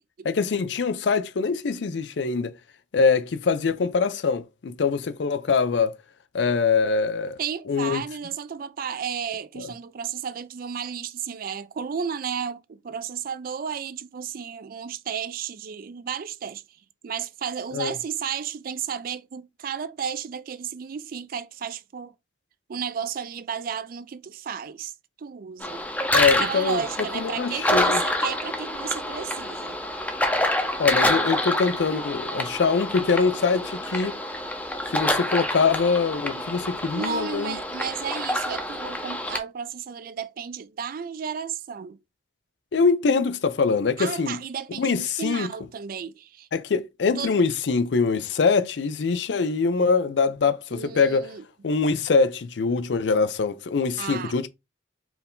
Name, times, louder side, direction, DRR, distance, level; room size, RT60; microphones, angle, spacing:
voice 1, 0.2-2.5 2.9-5.9 6.3-7.4 7.7-8.0 9.6-9.7 17.7-17.9 26.1-26.8 27.1-28.0 30.8-34.2 34.9-37.6 42.7-44.4 44.7-45.5 46.5-51.4 51.6-54.5, left 4 dB, 80° left, 0.5 m, -23 dB
voice 2, 7.4-16.6 17.0-22.1 22.7-24.9 25.2-25.8 26.3-29.8 36.3-36.4 37.0-42.0 44.0-46.5 47.2-47.3 50.7-51.4 54.0-54.4, right 7 dB, 55° right, 0.4 m, -33 dB
sound 1, 25.6-39.4, left 1 dB, 10° left, 0.6 m, -27 dB
4.6 x 2.6 x 3.5 m
head